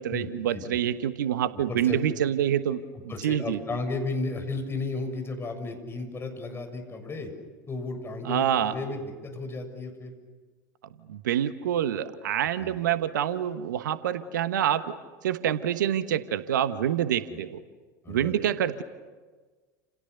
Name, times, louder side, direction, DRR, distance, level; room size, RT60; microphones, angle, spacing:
voice 1, 0.0-2.8 3.2-3.6 8.2-8.7 11.1-17.6 18.1-18.8, right 10 dB, 75° right, 12 dB, 1.2 m, -27 dB
voice 2, 1.5-2.0 3.1-7.3 7.7-10.1 12.6-12.8 17.3-17.4 18.0-18.4, left 3 dB, 25° left, 5 dB, 6.8 m, -34 dB
30.0 x 28.5 x 6.8 m, 1.4 s
figure-of-eight pair, 75°, 10 cm